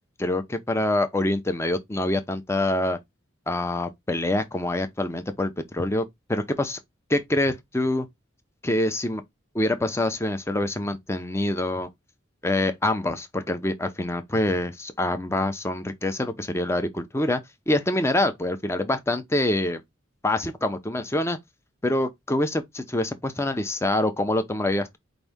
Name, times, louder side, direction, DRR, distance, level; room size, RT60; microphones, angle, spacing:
voice 1, 0.2-3.0 3.5-6.8 7.1-8.1 8.6-9.2 9.5-11.9 12.4-17.4 17.7-19.8 20.2-21.4 21.8-25.0, left 1 dB, 15° left, 0.6 m, -25 dB
4.9 x 2.7 x 3.4 m
head